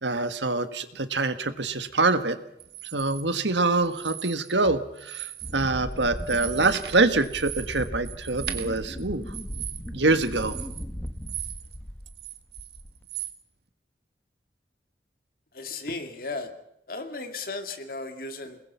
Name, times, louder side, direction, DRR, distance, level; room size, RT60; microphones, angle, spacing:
voice 1, 0.0-2.4 2.9-9.3 9.9-10.5, right 3 dB, 90° right, 11 dB, 1.6 m, -25 dB
sound 1, 2.6-3.2 3.9-4.7 5.0-5.6 5.9-11.8 12.1-13.4, right 12 dB, 65° right, 1.7 m, -39 dB
Wind, 5.4-12.2 12.6-13.0, equal, 10° left, 1.1 m, -37 dB
voice 2, 15.5-16.5 16.9-18.6, left 3 dB, 55° left, 6 dB, 2.4 m, -35 dB
29.0 x 20.5 x 5.7 m, 0.77 s
head